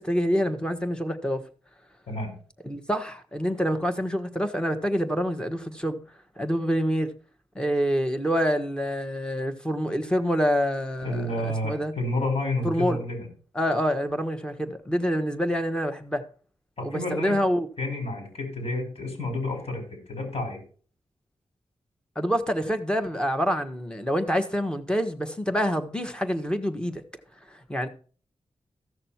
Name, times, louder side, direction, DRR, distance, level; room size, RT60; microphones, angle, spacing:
voice 1, 0.0-1.4 2.6-6.0 6.4-7.1 7.5-11.9 12.6-13.0 13.5-16.2 16.8-17.7 22.1-27.0 27.5-27.9, equal, 10° left, 1.5 m, -26 dB
voice 2, 11.0-13.3 16.8-17.3 17.8-19.8 20.1-20.6, left 2 dB, 65° left, 5.8 m, -30 dB
14.5 x 6.6 x 4.5 m
cardioid pair, 65°, 11 cm